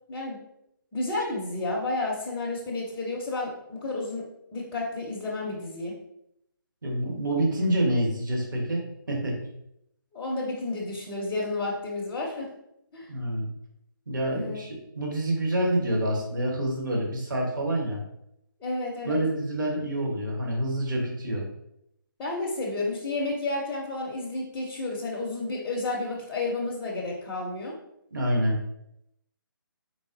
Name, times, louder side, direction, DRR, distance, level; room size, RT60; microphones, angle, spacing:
voice 1, 0.9-5.9 10.1-12.5 12.9-13.1 14.3-14.6 18.6-19.2 22.2-27.7, left 2 dB, 10° left, -5 dB, 0.4 m, -31 dB
voice 2, 6.8-8.8 9.1-9.4 13.1-13.5 14.1-14.7 14.9-18.0 19.0-21.5 28.1-28.6, right 1 dB, 60° right, -1 dB, 1.1 m, -27 dB
3.9 x 3.6 x 2.5 m, 0.79 s
figure-of-eight pair, 145°, 12 cm